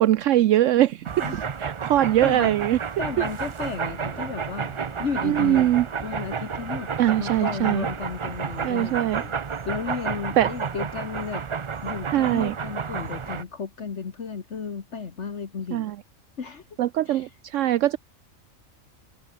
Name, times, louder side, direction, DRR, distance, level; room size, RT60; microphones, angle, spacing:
voice 1, 0.0-1.0 1.3-2.8 5.2-5.9 7.0-7.9 8.6-9.2 10.4-10.5 12.1-12.5 15.7-16.0 16.8-18.0, right 13 dB, 75° right, 0.9 m, -21 dB
sound 1, 1.1-13.4, right 6 dB, 45° right, 0.4 m, -31 dB
voice 2, 2.2-2.6 3.0-4.7 5.0-5.7 6.0-6.9 7.2-9.3 9.7-11.4 11.8-15.9 16.4-16.6 17.1-17.3, left 5 dB, 60° left, 1.7 m, -33 dB
Thunder / Rain, 2.4-11.9, left 3 dB, 45° left, 3.1 m, -54 dB
omnidirectional pair, 1.4 m